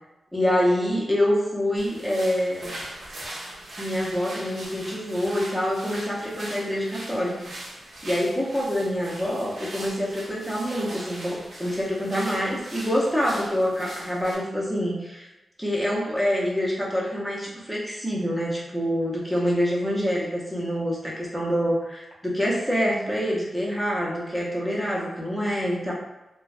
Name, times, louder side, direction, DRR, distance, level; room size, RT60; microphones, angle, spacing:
voice 1, 0.3-2.7 3.8-7.4 8.0-15.3 15.6-25.9, equal, ahead, -5 dB, 0.5 m, -26 dB
sound 1, 1.8-14.3, right 1 dB, 60° right, 0.6 m, -40 dB
2.5 x 2.1 x 2.3 m, 1.0 s
wide cardioid pair, 150°, 0 cm